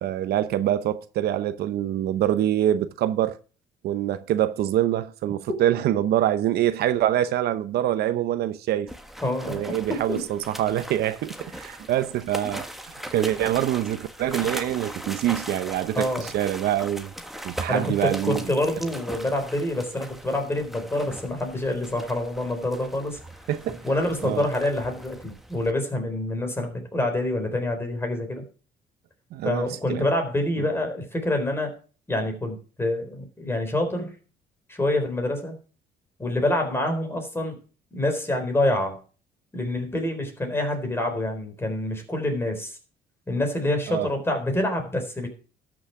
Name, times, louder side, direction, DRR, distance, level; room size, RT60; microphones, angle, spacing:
voice 1, 0.0-3.4 3.8-8.9 9.5-17.1 17.4-18.4 23.5-23.8 24.2-24.5 29.3-30.0 30.6-30.7 43.9-44.1, right 12 dB, 70° right, 0.8 m, -25 dB
sound 1, 8.9-25.7, right 1 dB, ahead, 1.4 m, -39 dB
voice 2, 9.2-10.2 16.0-16.3 17.7-23.2 23.8-28.4 29.4-31.7 32.1-34.1 34.7-35.6 36.2-37.6 37.9-39.0 39.5-42.8 43.3-45.3, left 1 dB, 15° left, 3.9 m, -26 dB
12.5 x 6.4 x 5.8 m
cardioid pair, 110°, 17 cm